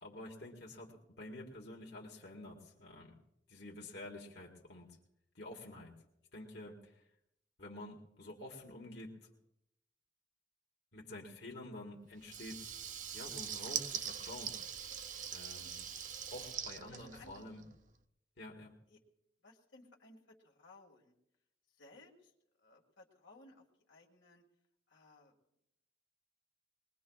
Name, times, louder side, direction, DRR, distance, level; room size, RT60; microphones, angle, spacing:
voice 1, 0.0-3.2 3.5-5.0 5.3-5.9 6.3-7.0 7.6-9.3 10.9-12.7 13.1-14.5 15.3-15.8 16.3-17.7 18.4-18.8, left 1 dB, 60° left, -1 dB, 1.6 m, -49 dB
Water tap faucet / Liquid, 12.2-17.7, right 8 dB, 45° right, 0.6 m, -43 dB
voice 2, 16.9-17.3 18.9-19.0 19.4-21.2 21.8-22.3 22.6-24.4 24.9-25.4, left 2 dB, 80° left, 0 dB, 1.9 m, -60 dB
21.5 x 21.0 x 2.3 m, 0.81 s
head